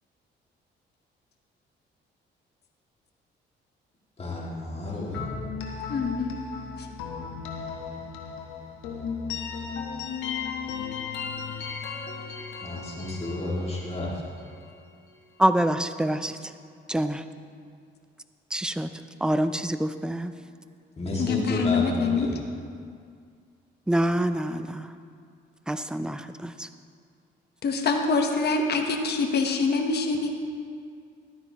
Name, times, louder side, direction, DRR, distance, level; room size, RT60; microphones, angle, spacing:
voice 1, 4.2-5.2 12.6-14.2 21.0-22.3, left 1 dB, 30° left, -4 dB, 2.1 m, -31 dB
sound 1, 5.1-14.9, left 6 dB, 90° left, 1.2 m, -36 dB
voice 2, 5.9-6.4 6.8-6.9 21.2-22.3 27.6-30.3, left 4 dB, 55° left, 3 dB, 1.0 m, -25 dB
voice 3, 15.4-16.5 16.9-17.2 18.5-18.9 19.2-20.3 23.9-24.9 25.7-26.7, right 1 dB, 5° right, 11 dB, 0.4 m, -26 dB
12.5 x 9.6 x 2.9 m, 2.2 s
cardioid pair, 90°, 20 cm